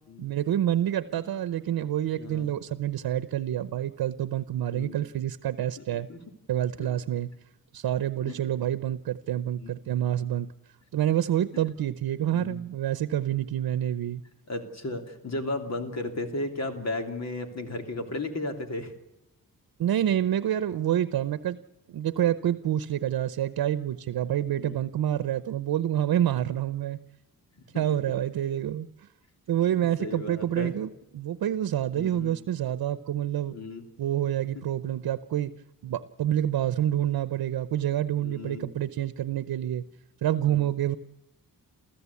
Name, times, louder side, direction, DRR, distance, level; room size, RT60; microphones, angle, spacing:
voice 1, 0.2-6.1 6.5-7.3 7.7-10.5 10.9-14.2 19.8-21.6 21.9-27.0 27.7-29.1 29.5-33.6 34.0-35.5 35.8-39.8 40.2-41.0, right 11 dB, 90° right, 13 dB, 0.8 m, -27 dB
voice 2, 2.2-2.5 4.7-5.0 5.8-6.2 6.8-6.9 8.3-8.4 9.6-9.7 12.3-12.6 14.5-18.9 24.5-24.8 27.7-27.8 29.8-30.7 31.9-32.3 33.5-33.8 38.2-38.7 40.4-40.6, left 2 dB, 45° left, 5 dB, 3.0 m, -35 dB
29.0 x 14.5 x 8.4 m, 0.89 s
wide cardioid pair, 155°, 36 cm